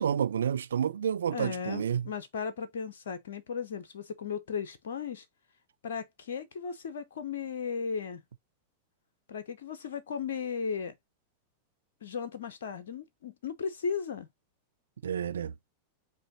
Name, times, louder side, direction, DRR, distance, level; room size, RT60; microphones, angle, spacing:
voice 1, 0.0-2.1 15.0-15.5, right 8 dB, 65° right, 0.4 m, -29 dB
voice 2, 1.3-5.3 5.8-8.2 9.3-11.0 12.0-14.3, left 6 dB, 60° left, 0.7 m, -36 dB
7.6 x 2.7 x 2.5 m
figure-of-eight pair, 90°, 0 cm